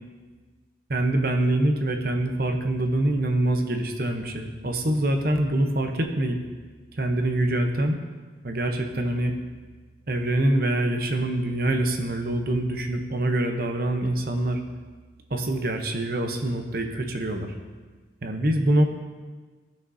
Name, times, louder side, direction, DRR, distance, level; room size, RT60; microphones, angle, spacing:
voice 1, 0.9-6.4 7.0-8.0 8.4-9.3 10.1-14.6 15.3-17.6 18.2-18.8, right 1 dB, 55° right, 4 dB, 0.9 m, -25 dB
14.5 x 6.2 x 2.8 m, 1.4 s
head